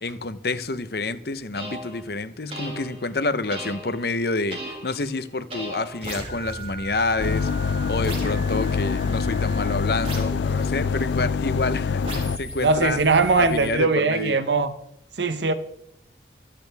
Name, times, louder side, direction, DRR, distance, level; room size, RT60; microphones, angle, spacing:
voice 1, 0.0-13.1 13.4-14.5, left 3 dB, 60° left, 0.9 m, -28 dB
sound 1, 1.5-2.0 2.5-3.1 3.5-4.1 4.5-5.1 5.5-11.6 12.0-13.7, right 1 dB, 35° right, 5.4 m, -36 dB
sound 2, 7.2-12.4, left 5 dB, 85° left, 0.4 m, -25 dB
voice 2, 12.6-14.7 15.2-15.5, right 3 dB, 85° right, 0.9 m, -20 dB
26.0 x 8.8 x 3.5 m
head